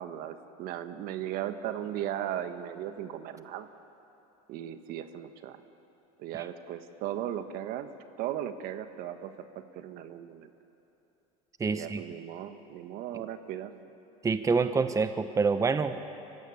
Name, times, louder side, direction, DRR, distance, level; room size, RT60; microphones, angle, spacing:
voice 1, 0.0-3.7 4.5-5.6 6.2-7.9 8.2-9.5 9.7-10.5 11.7-13.7, right 11 dB, 60° right, 9 dB, 1.5 m, -37 dB
voice 2, 11.6-12.0 14.2-16.0, right 4 dB, 20° right, 10 dB, 1.0 m, -26 dB
24.5 x 15.5 x 9.9 m, 2.9 s
supercardioid pair, 95°, 17 cm